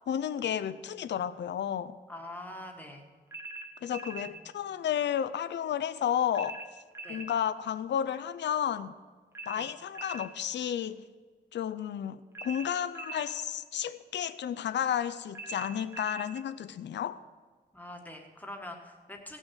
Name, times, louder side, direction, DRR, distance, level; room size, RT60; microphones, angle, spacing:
voice 1, 0.1-2.0 3.8-6.6 7.1-8.9 9.5-11.0 11.5-17.2, left 9 dB, 75° left, 0.5 m, -32 dB
voice 2, 2.1-3.0 4.2-4.5 7.0-7.2 9.6-9.7 17.7-19.4, left 1 dB, 10° left, 1.5 m, -44 dB
sound 1, 3.3-4.3 6.3-7.3 9.3-10.3 12.3-13.3 15.3-16.3, right 3 dB, 15° right, 1.0 m, -42 dB
16.5 x 6.2 x 6.4 m
wide cardioid pair, 140°, 19 cm